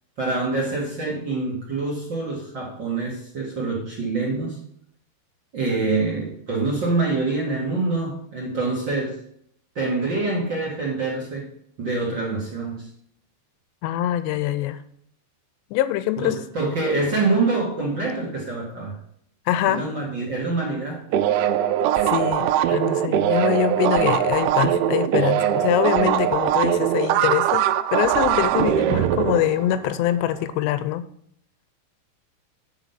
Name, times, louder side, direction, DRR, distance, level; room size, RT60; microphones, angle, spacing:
voice 1, 0.2-4.6 5.5-9.2 9.7-11.5 11.8-12.9 16.2-18.9 19.7-21.1, right 3 dB, 50° right, -3 dB, 1.4 m, -25 dB
voice 2, 13.8-14.8 15.7-16.4 19.5-19.8 22.1-31.1, left 12 dB, 80° left, 13 dB, 2.7 m, -24 dB
sound 1, 21.1-30.3, right 11 dB, 85° right, 2.9 m, -21 dB
9.2 x 5.0 x 5.7 m, 0.67 s
omnidirectional pair, 5.3 m